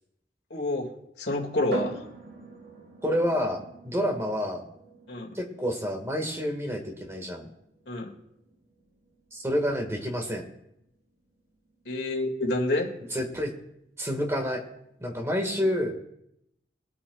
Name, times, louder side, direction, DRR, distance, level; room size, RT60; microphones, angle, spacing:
voice 1, 0.5-0.9 1.2-2.0 5.1-5.4 7.9-8.1 11.9-12.9, left 2 dB, 65° left, 1 dB, 2.0 m, -28 dB
sound 1, 1.7-15.2, right 3 dB, 55° right, 3.3 m, -44 dB
voice 2, 3.0-4.6 5.3-7.5 9.3-10.4 13.1-13.5 14.0-14.6 15.0-16.0, equal, 15° right, 2 dB, 1.6 m, -28 dB
21.5 x 8.5 x 2.3 m, 0.80 s
head